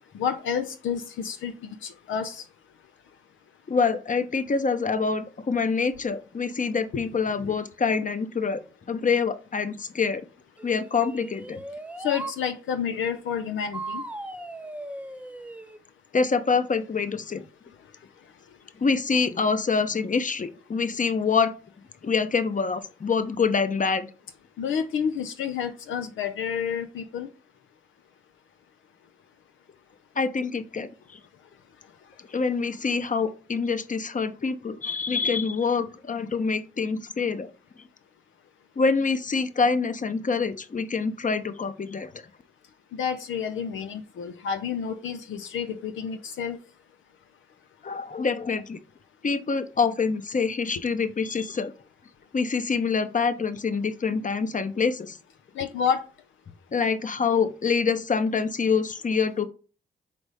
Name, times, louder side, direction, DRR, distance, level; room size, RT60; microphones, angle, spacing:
voice 1, 0.1-2.4 6.9-7.0 7.4-7.5 12.0-14.0 24.6-27.3 42.9-46.6 55.6-56.0, left 7 dB, 80° left, 0.6 m, -29 dB
voice 2, 3.7-8.6 8.9-10.2 10.6-11.6 16.1-17.4 18.8-21.5 22.0-24.1 30.2-30.9 32.3-37.5 38.8-42.3 47.8-48.8 49.2-51.7 52.3-55.2 56.7-59.5, left 5 dB, 40° left, 0.9 m, -26 dB
sound 1, 10.6-12.4 13.7-15.8, right 2 dB, 5° right, 0.7 m, -38 dB
5.1 x 4.0 x 4.9 m
supercardioid pair, 40°, 20 cm